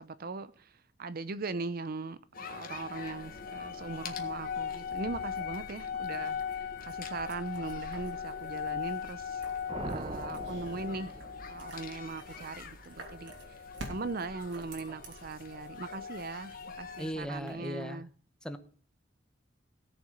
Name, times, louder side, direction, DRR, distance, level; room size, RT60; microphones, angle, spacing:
voice 1, 0.0-9.4 9.8-11.1 11.5-13.6 13.9-18.1, right 3 dB, 50° right, 0.6 m, -40 dB
sound 1, 2.3-17.1, left 7 dB, 50° left, 1.7 m, -40 dB
sound 2, 3.0-17.5, right 1 dB, 70° right, 3.0 m, -51 dB
sound 3, 9.7-11.9, right 1 dB, 30° right, 1.0 m, -41 dB
voice 2, 17.0-18.0 18.4-18.6, equal, 5° left, 1.0 m, -37 dB
17.5 x 7.0 x 5.1 m
head